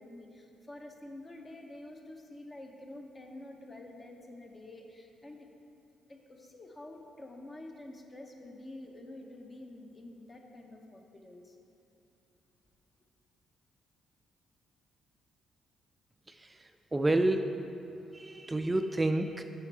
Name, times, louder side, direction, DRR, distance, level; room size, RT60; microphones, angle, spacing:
voice 1, 0.0-5.5 6.1-11.6, left 1 dB, 35° left, 2 dB, 1.0 m, -48 dB
voice 2, 16.9-17.6 18.1-19.4, right 2 dB, 25° right, 7 dB, 0.3 m, -28 dB
7.0 x 5.4 x 4.2 m, 2.8 s
supercardioid pair, 55°, 0 cm